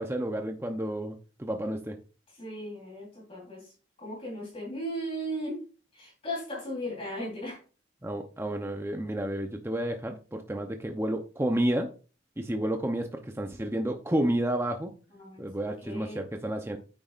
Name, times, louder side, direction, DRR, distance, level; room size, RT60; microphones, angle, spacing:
voice 1, 0.0-2.0 8.0-11.9 12.4-14.9 15.4-16.8, right 1 dB, 15° right, 4 dB, 0.6 m, -31 dB
voice 2, 2.3-3.7 4.0-5.6 5.9-7.6 15.1-16.2, equal, 30° left, -3 dB, 3.6 m, -37 dB
9.3 x 8.9 x 2.5 m, 0.35 s
head